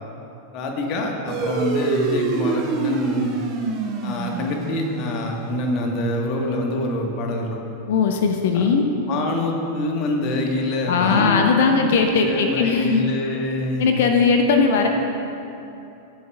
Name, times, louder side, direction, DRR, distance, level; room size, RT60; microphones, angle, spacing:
voice 1, 0.5-3.3 4.0-7.6 8.5-8.7 9.1-11.9 12.2-13.9, left 1 dB, 40° left, 1 dB, 1.6 m, -25 dB
sound 1, 1.3-6.1, right 4 dB, 35° right, 1.5 m, -27 dB
voice 2, 7.9-8.8 10.9-13.0 13.8-14.9, left 5 dB, 55° left, 4 dB, 0.8 m, -18 dB
17.5 x 9.8 x 2.5 m, 2.8 s
figure-of-eight pair, 90°, 0 cm